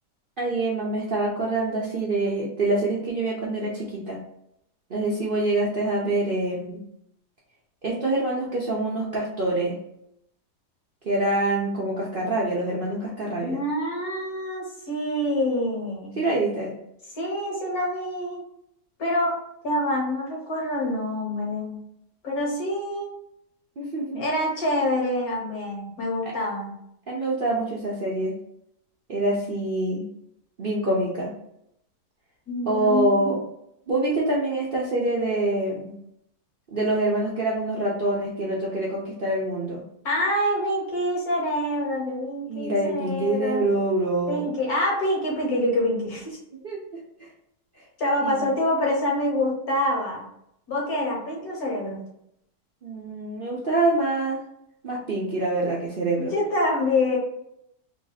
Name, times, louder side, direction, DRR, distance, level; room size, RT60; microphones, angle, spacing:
voice 1, 0.4-4.2 4.9-6.8 7.8-9.7 11.0-13.6 16.2-16.7 23.8-24.2 27.1-28.3 29.1-30.0 30.6-31.3 32.7-33.4 33.9-35.9 36.7-39.8 42.5-44.5 46.6-46.8 48.2-48.4 52.8-54.4 54.8-56.3, right 2 dB, 50° right, -5 dB, 0.7 m, -25 dB
voice 2, 13.3-16.2 17.1-18.4 19.0-19.4 19.6-21.8 22.2-23.1 24.2-26.7 32.5-33.3 40.0-43.7 44.3-46.4 48.0-50.2 50.7-52.0 56.1-57.2, left 1 dB, 65° left, -2 dB, 1.8 m, -26 dB
3.4 x 2.5 x 3.9 m, 0.75 s
omnidirectional pair, 1.7 m